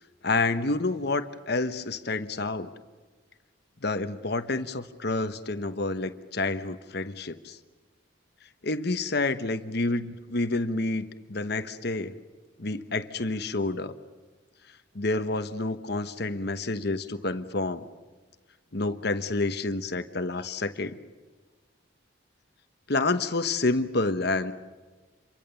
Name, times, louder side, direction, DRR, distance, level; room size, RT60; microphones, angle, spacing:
voice 1, 0.2-2.7 3.8-7.6 8.6-12.2 12.6-13.9 14.9-17.9 18.7-21.0 22.9-24.5, left 3 dB, 55° left, 10 dB, 1.1 m, -29 dB
27.0 x 23.0 x 7.0 m, 1.4 s
head